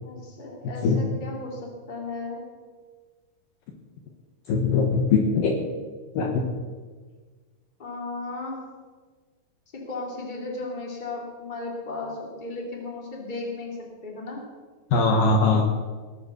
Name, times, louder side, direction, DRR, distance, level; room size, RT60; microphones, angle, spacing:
voice 1, 0.0-2.4 7.8-8.6 9.7-13.8 14.0-14.4, left 3 dB, 15° left, -1 dB, 2.5 m, -35 dB
voice 2, 4.5-5.5 6.2-6.4 14.9-15.6, left 4 dB, 65° left, 1 dB, 2.6 m, -21 dB
18.0 x 9.0 x 6.6 m, 1.4 s
omnidirectional pair, 4.9 m